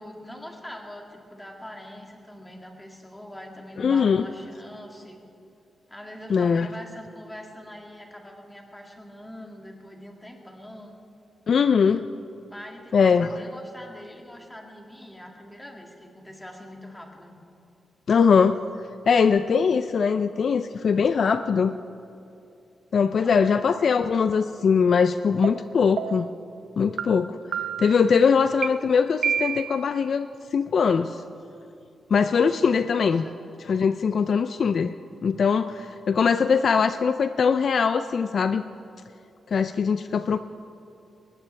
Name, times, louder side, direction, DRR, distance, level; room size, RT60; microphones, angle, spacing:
voice 1, 0.0-5.2 5.9-11.0 12.5-17.4 21.1-21.3 23.2-23.4 33.0-33.3, left 1 dB, 10° left, 0 dB, 2.2 m, -43 dB
voice 2, 3.8-4.2 6.3-6.7 11.5-12.0 12.9-13.3 18.1-18.6 19.1-21.7 22.9-26.3 26.8-27.4 27.8-31.2 32.1-33.2 33.6-34.9 35.2-38.6 39.5-40.4, left 6 dB, 55° left, 10 dB, 0.4 m, -21 dB
sound 1, 25.4-25.5 26.0-26.4 27.0-27.1 27.5-28.0 28.6-28.7 29.2-29.8, right 8 dB, 90° right, 0.7 m, -28 dB
21.0 x 19.5 x 3.3 m, 2.7 s
wide cardioid pair, 135°, 0 cm